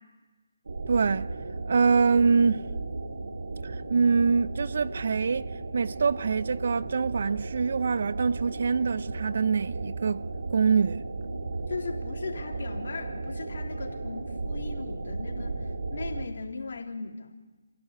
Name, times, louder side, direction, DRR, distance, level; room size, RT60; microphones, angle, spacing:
sound 1, 0.6-16.3, right 3 dB, 70° right, 2.7 m, -35 dB
voice 1, 0.9-1.3 1.7-2.6 3.9-5.5 5.7-10.2 10.5-11.0, right 5 dB, 55° right, 0.7 m, -24 dB
voice 2, 11.7-17.3, left 4 dB, 60° left, 3.4 m, -38 dB
27.5 x 16.0 x 8.3 m
figure-of-eight pair, 160°, 0 cm